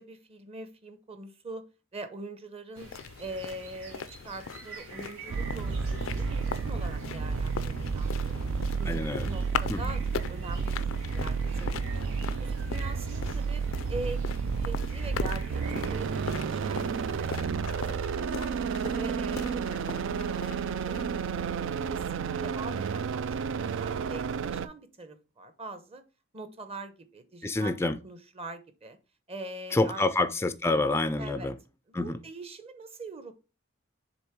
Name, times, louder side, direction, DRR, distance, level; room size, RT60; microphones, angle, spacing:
voice 1, 0.0-1.7 1.9-2.9 3.2-8.5 8.8-10.0 10.3-12.1 12.4-13.6 13.9-14.3 14.6-17.6 18.1-18.5 18.8-20.5 20.9-21.0 21.8-23.3 23.6-26.0 26.3-29.0 29.3-30.0 31.2-31.5 31.9-33.3, right 2 dB, 30° right, 0.9 m, -43 dB
sound 1, 2.7-17.4, right 4 dB, 85° right, 1.9 m, -49 dB
sound 2, 2.8-21.3, left 6 dB, 75° left, 0.4 m, -40 dB
sound 3, 5.3-24.7, right 5 dB, 65° right, 0.4 m, -31 dB
voice 2, 8.9-9.3 9.7-9.8 27.4-28.0 29.7-31.5 31.9-32.2, left 2 dB, 15° left, 0.4 m, -27 dB
7.0 x 3.4 x 4.5 m
head